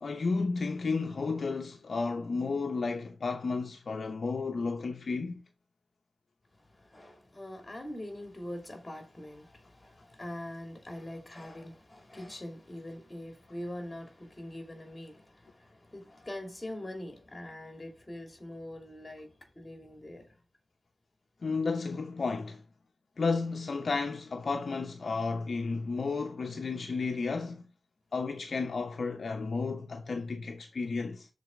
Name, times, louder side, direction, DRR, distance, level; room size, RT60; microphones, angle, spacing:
voice 1, 0.0-5.4 21.4-22.6 23.2-27.7 28.1-31.3, left 4 dB, 65° left, 0.7 m, -32 dB
voice 2, 6.7-20.3, left 1 dB, 25° left, 2.7 m, -43 dB
6.7 x 4.1 x 5.8 m
cardioid pair, 45°, 0 cm